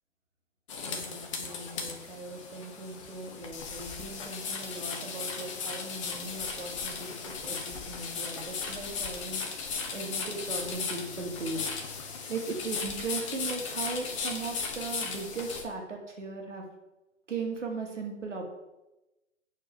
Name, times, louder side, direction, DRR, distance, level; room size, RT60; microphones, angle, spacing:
sound 1, 0.7-15.6, left 5 dB, 25° left, 0.9 m, -36 dB
voice 1, 0.9-11.9 12.3-16.6 17.3-18.4, right 3 dB, 70° right, 1 dB, 2.2 m, -38 dB
8.1 x 4.5 x 5.4 m, 0.98 s
figure-of-eight pair, 135°, 38 cm